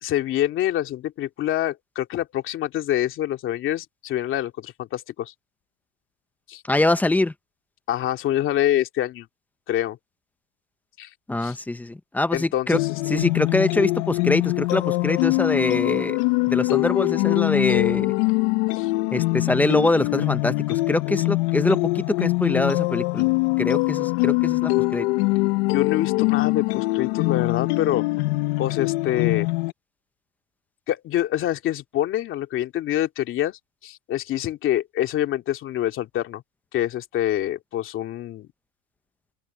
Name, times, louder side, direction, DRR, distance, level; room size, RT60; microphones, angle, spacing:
voice 1, 0.0-5.3 6.5-6.6 7.9-9.3 9.7-10.0 11.0-11.1 11.4-11.6 12.3-12.9 18.7-18.9 25.6-28.0 28.6-29.5 30.9-36.4 36.7-38.5, left 12 dB, 40° left, 2.6 m, -26 dB
voice 2, 6.7-7.3 11.3-12.8 13.1-16.2 16.5-18.2 19.1-23.3 23.6-25.1, left 2 dB, 5° left, 0.7 m, -24 dB
sound 1, 12.7-29.7, left 23 dB, 90° left, 0.8 m, -23 dB
cardioid pair, 165°, 32 cm